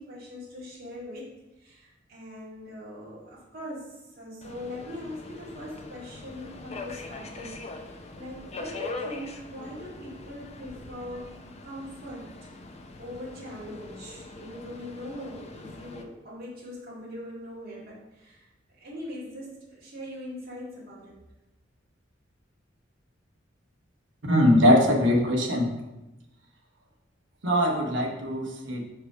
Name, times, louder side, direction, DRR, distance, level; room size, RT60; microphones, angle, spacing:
voice 1, 0.0-18.5 18.7-21.2, left 1 dB, 50° right, -9 dB, 1.9 m, -41 dB
Subway metro underground, 4.4-16.0, left 3 dB, 35° left, 0.6 m, -42 dB
voice 2, 24.3-25.7 27.4-28.8, left 1 dB, 70° right, 1 dB, 1.1 m, -21 dB
4.7 x 4.7 x 4.9 m, 0.99 s
head